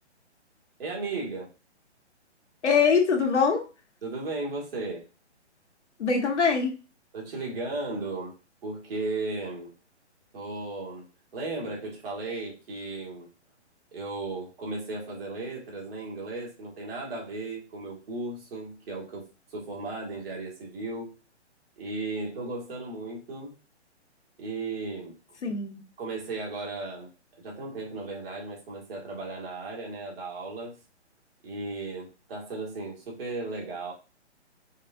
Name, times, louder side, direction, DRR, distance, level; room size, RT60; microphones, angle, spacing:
voice 1, 0.8-1.5 4.0-5.0 7.1-8.3 8.6-9.7 10.3-11.1 11.3-13.3 13.9-21.2 21.8-23.5 24.4-25.1 26.0-27.1 27.4-30.8 31.4-33.9, right 3 dB, 55° right, -2 dB, 1.8 m, -35 dB
voice 2, 2.6-3.6 6.0-6.7 25.4-25.8, left 5 dB, 75° left, 3 dB, 1.3 m, -23 dB
5.2 x 2.6 x 2.5 m, 0.32 s
hypercardioid pair, 165°, 35 cm